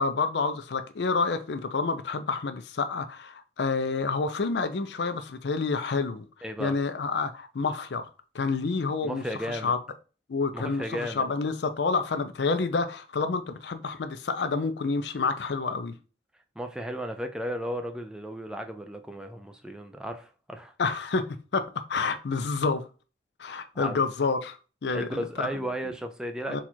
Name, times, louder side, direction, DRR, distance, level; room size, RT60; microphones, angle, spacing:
voice 1, 0.0-6.3 6.6-8.1 8.3-9.8 10.3-15.9 20.8-21.3 21.5-22.9 23.4-25.5 26.5-26.6, left 4 dB, 70° left, 0.5 m, -28 dB
voice 2, 6.4-6.7 9.0-9.7 10.5-11.3 16.6-20.7 23.7-24.0 24.9-26.6, equal, 5° right, 0.4 m, -34 dB
4.2 x 2.4 x 4.4 m
head